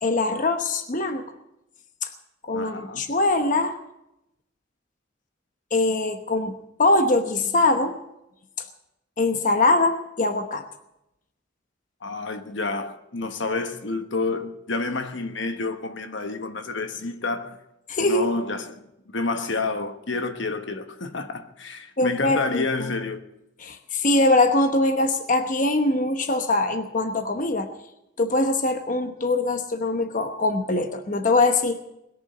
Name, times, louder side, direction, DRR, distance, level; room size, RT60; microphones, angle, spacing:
voice 1, 0.0-1.2 2.0-2.1 2.5-3.7 5.7-6.5 6.8-8.0 9.2-10.6 17.9-18.3 22.0-22.9 23.6-27.7 28.2-31.8, left 2 dB, 40° left, 1.0 m, -22 dB
voice 2, 2.5-3.1 12.0-17.6 18.0-18.8 19.1-23.2, left 3 dB, 65° left, 1.2 m, -29 dB
21.0 x 7.2 x 9.3 m
head